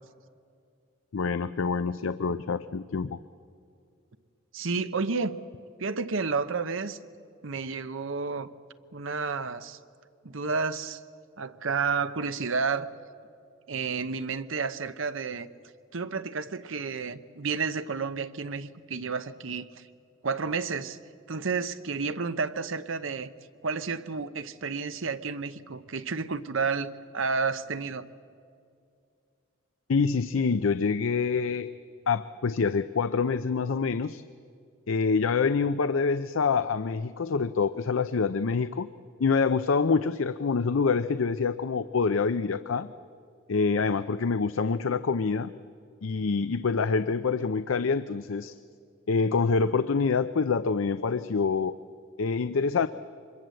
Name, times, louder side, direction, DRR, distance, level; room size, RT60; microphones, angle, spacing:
voice 1, 1.1-3.2 29.9-31.7 32.1-34.2 34.9-38.9 39.2-42.9 43.5-45.5 46.0-48.6 49.1-51.8 52.2-52.9, left 5 dB, 80° left, 12 dB, 0.5 m, -26 dB
voice 2, 4.5-5.4 5.8-7.0 7.4-8.5 8.9-9.8 10.2-11.0 11.4-12.9 13.7-15.5 15.9-19.8 20.2-21.0 21.3-23.3 23.6-28.1, right 4 dB, 75° right, 12 dB, 0.8 m, -31 dB
25.0 x 21.5 x 7.7 m, 2.3 s
head